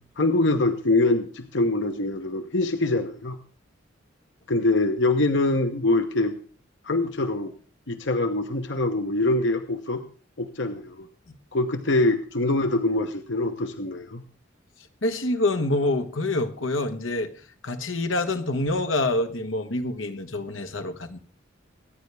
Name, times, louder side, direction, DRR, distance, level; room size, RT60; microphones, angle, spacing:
voice 1, 0.2-3.4 4.5-6.3 6.9-7.5 7.9-10.0 10.4-11.1 11.5-14.2, left 2 dB, 65° left, 1.1 m, -24 dB
voice 2, 15.0-17.3 17.6-21.2, left 2 dB, 90° left, 1.4 m, -26 dB
24.5 x 9.7 x 3.5 m
head